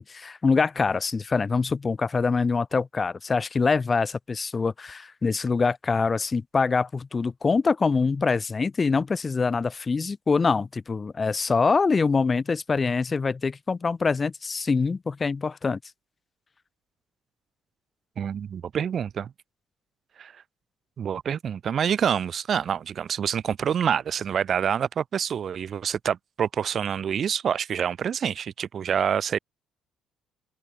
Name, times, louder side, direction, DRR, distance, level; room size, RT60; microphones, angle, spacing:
voice 1, 0.0-15.8, left 4 dB, 30° left, 2.8 m, -24 dB
voice 2, 18.2-19.3 20.2-20.3 21.0-29.4, right 8 dB, 50° right, 4.9 m, -27 dB
open air
hypercardioid pair, 50°, 0 cm